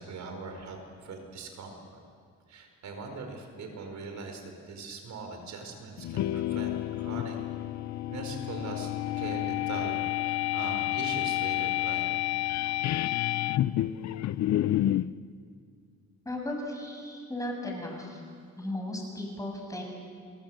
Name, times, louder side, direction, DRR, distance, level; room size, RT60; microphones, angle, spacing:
voice 1, 0.0-2.0 2.5-4.4 4.7-7.4 8.1-8.9 9.2-12.2, right 3 dB, 65° right, 4 dB, 4.6 m, -41 dB
sound 1, 6.0-15.1, left 14 dB, 65° left, 0.6 m, -29 dB
voice 2, 16.3-18.2 18.6-19.8, left 1 dB, 10° left, 1 dB, 7.0 m, -36 dB
29.0 x 19.0 x 7.9 m, 2.2 s
cardioid pair, 90°, 30 cm